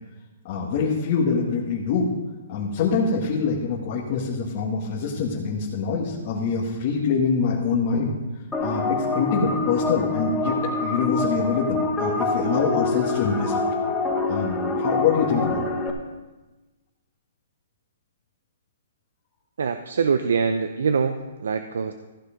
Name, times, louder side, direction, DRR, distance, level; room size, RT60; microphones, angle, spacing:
voice 1, 0.4-2.1 2.5-8.1 8.6-13.6 14.3-15.7, left 5 dB, 40° left, -6 dB, 1.8 m, -25 dB
sound 1, 8.5-15.9, left 3 dB, 5° left, 1.1 m, -25 dB
voice 2, 19.6-21.9, right 5 dB, 80° right, 8 dB, 0.6 m, -24 dB
14.5 x 6.7 x 5.2 m, 1.1 s
hypercardioid pair, 155°, 0 cm